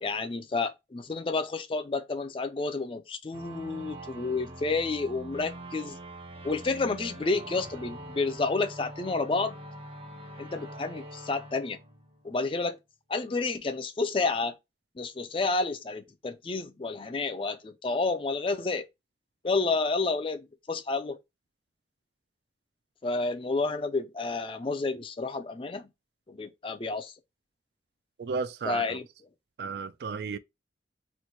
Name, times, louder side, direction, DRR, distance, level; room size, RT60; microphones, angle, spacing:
voice 1, 0.0-6.0 6.4-9.6 10.4-11.8 12.2-12.8 13.1-14.6 15.0-18.9 19.4-21.2 23.0-25.9 26.3-27.1 28.6-29.1 29.7-29.8, left 3 dB, 30° left, 0.4 m, -30 dB
sound 1, 3.3-12.6, right 1 dB, 30° right, 0.7 m, -44 dB
voice 2, 28.2-28.8 29.6-30.4, right 5 dB, 65° right, 0.3 m, -33 dB
3.1 x 2.1 x 4.1 m
head